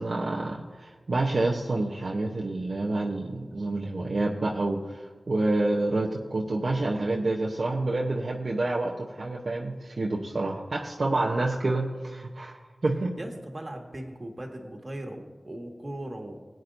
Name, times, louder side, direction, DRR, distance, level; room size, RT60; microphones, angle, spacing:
voice 1, 0.0-13.2, right 2 dB, 65° right, -1 dB, 0.9 m, -28 dB
voice 2, 13.2-16.4, right 1 dB, 40° right, 2 dB, 1.7 m, -38 dB
17.5 x 9.1 x 2.7 m, 1.4 s
cardioid pair, 45°, 0 cm